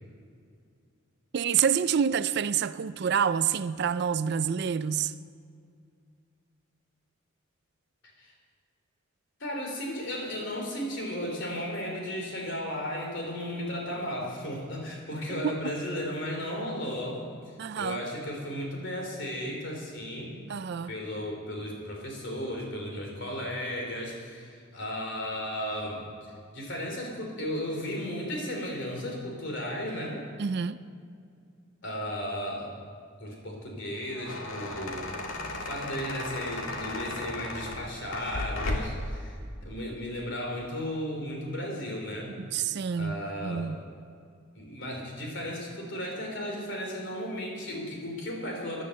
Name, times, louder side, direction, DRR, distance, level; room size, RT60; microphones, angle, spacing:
voice 1, 1.3-5.1 15.3-15.7 17.6-18.0 20.5-20.9 30.4-30.8 42.4-43.1 43.4-43.8, right 7 dB, 50° right, 0.4 m, -27 dB
voice 2, 9.4-20.4 20.9-30.2 31.8-32.7 33.2-42.3 42.9-43.7 44.5-48.8, equal, 55° left, 3.3 m, -35 dB
sound 1, 33.9-39.1, left 2 dB, 75° left, 1.7 m, -35 dB
14.5 x 11.0 x 6.5 m
head